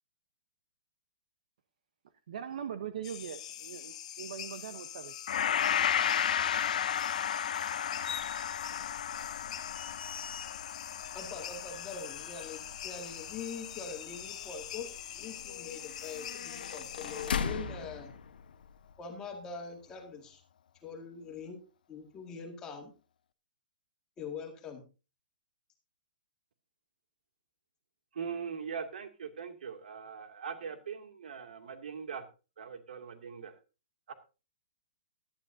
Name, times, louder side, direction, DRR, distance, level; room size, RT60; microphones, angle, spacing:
voice 1, 2.3-5.1 9.3-9.4, right 9 dB, 55° right, 0.9 m, -41 dB
sound 1, 3.0-17.3, left 11 dB, 45° left, 1.1 m, -44 dB
Gong, 5.3-13.7 14.0-14.2, left 9 dB, 60° left, 0.6 m, -33 dB
sound 2, 8.0-18.9, left 6 dB, 80° left, 1.2 m, -42 dB
voice 2, 11.1-14.9 15.1-18.1 19.0-20.4 20.8-21.6 21.9-22.9 24.2-24.8, left 5 dB, 15° left, 1.9 m, -43 dB
voice 3, 28.1-32.3 32.6-33.6 34.1-34.2, right 6 dB, 75° right, 2.4 m, -41 dB
17.5 x 11.5 x 2.7 m
hypercardioid pair, 175°, 5 cm